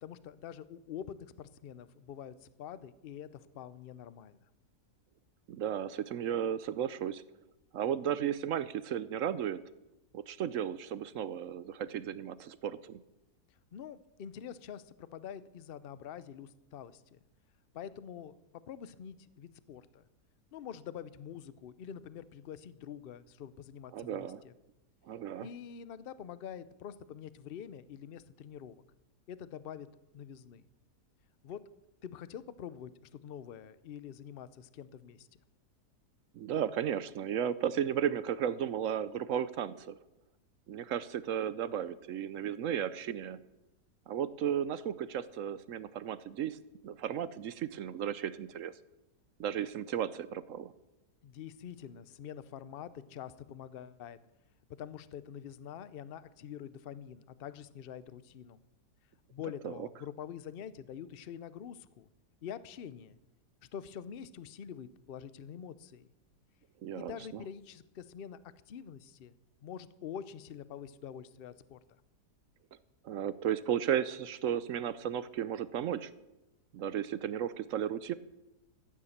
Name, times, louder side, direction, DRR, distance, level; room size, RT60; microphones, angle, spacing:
voice 1, 0.0-4.4 13.7-17.2 17.7-18.4 18.7-20.0 20.5-24.5 25.4-28.8 29.3-29.9 30.1-30.6 31.4-31.7 32.0-35.3 51.2-54.2 54.8-58.6 59.3-62.1 62.4-63.2 63.7-66.1 66.9-68.4 68.7-69.3 69.6-71.8, left 8 dB, 55° left, 15 dB, 0.6 m, -46 dB
voice 2, 5.5-7.2 7.7-9.6 10.1-13.0 23.9-24.4 25.1-25.5 36.3-40.0 40.7-43.4 44.1-46.6 46.8-48.7 49.4-50.7 59.6-59.9 66.8-67.4 73.0-76.1 76.7-78.1, right 9 dB, 65° right, 15 dB, 0.9 m, -34 dB
14.5 x 9.8 x 7.2 m, 0.96 s
omnidirectional pair, 1.7 m